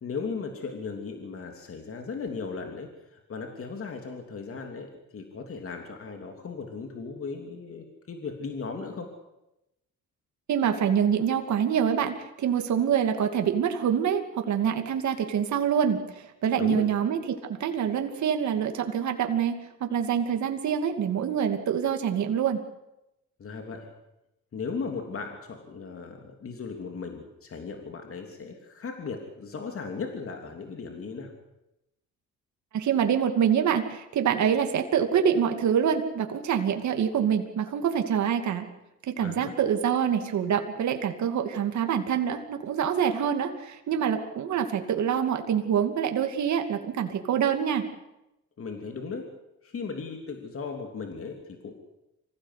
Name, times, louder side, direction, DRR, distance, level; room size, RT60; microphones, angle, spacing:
voice 1, 0.0-9.1 16.6-16.9 23.4-23.9 24.5-31.3 39.2-39.6 48.6-49.3 49.6-51.7, left 5 dB, 45° left, 3 dB, 3.1 m, -37 dB
voice 2, 10.5-22.6 32.7-38.7 39.1-47.9, right 8 dB, 70° right, 5 dB, 2.6 m, -26 dB
25.5 x 16.5 x 8.4 m, 0.92 s
cardioid pair, 90°, 30 cm